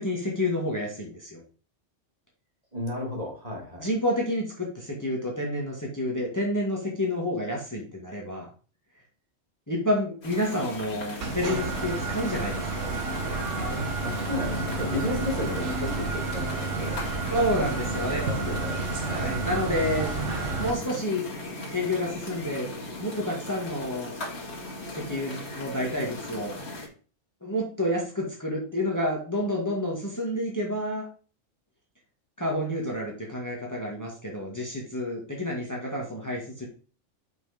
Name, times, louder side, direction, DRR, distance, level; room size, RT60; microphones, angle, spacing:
voice 1, 0.0-1.4 3.8-8.5 9.7-12.8 17.3-18.2 19.0-20.1 20.6-21.3 21.7-22.7 23.0-24.1 24.9-26.6 27.4-31.1 32.4-36.7, left 1 dB, 15° left, -2 dB, 1.9 m, -29 dB
voice 2, 2.7-3.9 14.0-17.0 17.9-18.8 19.1-19.4, left 2 dB, 30° right, -2 dB, 2.5 m, -33 dB
sound 1, 10.2-26.9, left 1 dB, 60° left, 2.3 m, -38 dB
sound 2, 11.2-20.7, right 3 dB, 90° right, 1.6 m, -30 dB
6.0 x 5.2 x 5.0 m, 0.38 s
omnidirectional pair, 1.3 m